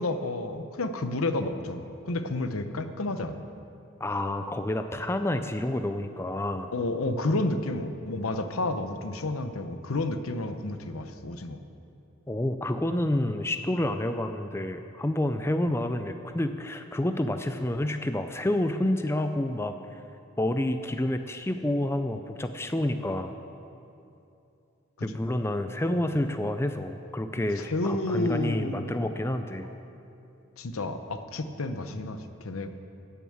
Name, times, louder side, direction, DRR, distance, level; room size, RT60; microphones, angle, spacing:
voice 1, 0.0-3.4 6.7-11.6 25.0-25.1 27.6-29.1 29.6-29.7 30.6-32.7, left 2 dB, 85° left, 8 dB, 0.8 m, -30 dB
voice 2, 4.0-6.7 12.3-19.7 20.4-23.3 25.0-29.7, left 1 dB, 10° left, 8 dB, 0.4 m, -29 dB
15.0 x 7.0 x 8.6 m, 2.7 s
head